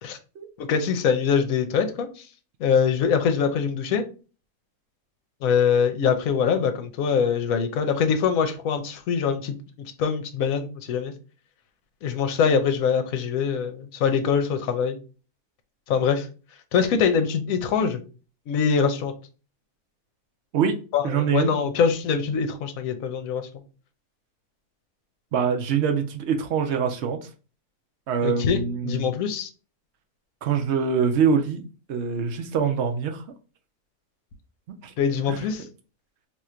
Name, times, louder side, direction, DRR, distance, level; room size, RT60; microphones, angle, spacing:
voice 1, 0.6-2.3 2.6-4.0 5.4-9.5 10.0-11.1 12.0-15.0 15.9-16.3 16.7-18.0 18.5-19.1 20.9-23.5 28.2-29.5 35.0-35.7, left 6 dB, 70° left, 1.0 m, -23 dB
voice 2, 21.0-21.5 25.3-27.3 28.1-29.2 30.4-31.6 31.9-33.2 34.8-34.9 35.3-35.4, right 6 dB, 65° right, 0.7 m, -24 dB
2.8 x 2.5 x 4.3 m
omnidirectional pair, 1.6 m